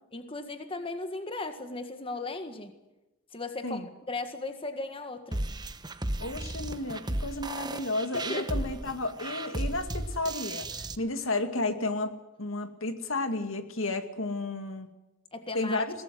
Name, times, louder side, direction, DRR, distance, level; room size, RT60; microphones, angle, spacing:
voice 1, 0.1-2.8 3.3-5.5 8.1-8.6 15.3-15.8, left 2 dB, 25° left, 8 dB, 1.8 m, -37 dB
sound 1, 5.3-11.0, right 1 dB, 20° right, 1.1 m, -34 dB
voice 2, 6.2-12.1 12.4-14.9 15.5-15.9, left 2 dB, 70° left, 8 dB, 2.5 m, -32 dB
22.5 x 18.5 x 7.8 m, 0.99 s
head